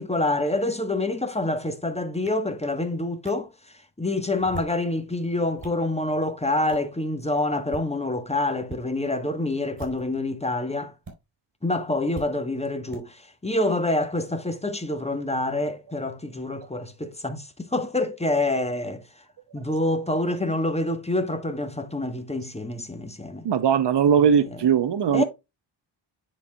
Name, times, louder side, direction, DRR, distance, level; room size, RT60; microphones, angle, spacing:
voice 1, 0.0-10.9 11.6-19.0 19.5-23.5 24.2-24.5 25.1-25.2, left 2 dB, 15° left, 1.1 m, -27 dB
sound 1, 2.3-2.4 3.2-3.3 4.3-4.8 5.3-5.8 6.7-6.9 7.6-7.9 8.6-8.8 9.7-10.2 11.0-11.1 12.1-12.3 12.9-13.0, right 3 dB, 40° right, 4.1 m, -40 dB
voice 2, 23.4-25.2, right 7 dB, 60° right, 0.8 m, -20 dB
10.5 x 4.1 x 2.2 m
cardioid pair, 95°, 48 cm